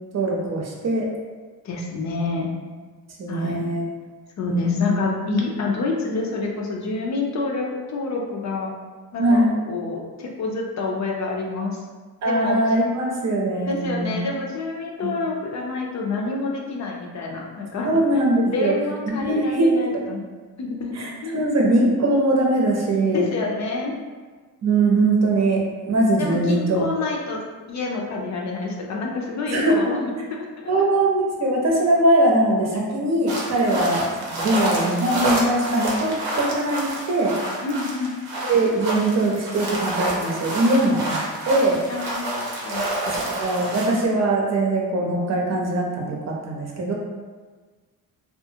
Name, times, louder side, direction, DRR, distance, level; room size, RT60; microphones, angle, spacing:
voice 1, 0.1-1.1 3.2-3.8 4.5-4.9 9.2-9.5 12.2-14.2 15.0-15.1 17.8-18.7 19.1-19.7 21.0-23.3 24.6-26.9 29.5-29.8 30.7-37.4 38.4-41.8 43.1-46.9, right 1 dB, 50° right, -2 dB, 0.7 m, -21 dB
voice 2, 1.6-2.5 3.3-3.6 4.4-8.7 9.1-11.8 12.2-12.6 13.7-17.9 18.4-20.2 20.6-20.9 21.2-21.5 23.1-23.9 26.2-27.4 27.7-30.0 30.3-30.5 33.7-33.9 37.6-38.1 41.9-42.9, left 3 dB, 50° left, -1 dB, 0.5 m, -27 dB
sound 1, 33.3-44.0, right 1 dB, 90° right, 0.7 m, -28 dB
2.7 x 2.4 x 2.7 m, 1.4 s
cardioid pair, 100°, 36 cm